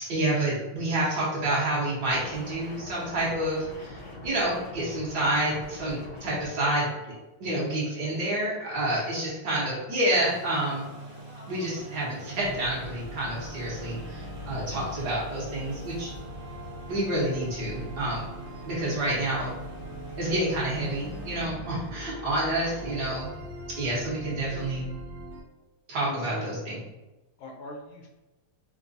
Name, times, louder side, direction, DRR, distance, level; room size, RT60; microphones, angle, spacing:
voice 1, 0.1-6.9 7.4-10.8 11.5-16.1 16.9-18.2 18.6-19.5 20.2-23.3 23.8-24.8 25.9-26.8, right 1 dB, 55° right, -6 dB, 1.4 m, -28 dB
sound 1, 2.1-6.5, left 2 dB, 60° left, 0.9 m, -43 dB
sound 2, 10.1-21.4, right 1 dB, 10° right, 0.5 m, -44 dB
sound 3, 12.4-25.4, right 1 dB, 85° right, 0.8 m, -41 dB
voice 2, 26.0-26.6 27.4-28.1, left 2 dB, 80° left, 1 dB, 1.4 m, -42 dB
4.5 x 2.3 x 2.5 m, 1.1 s
omnidirectional pair, 2.3 m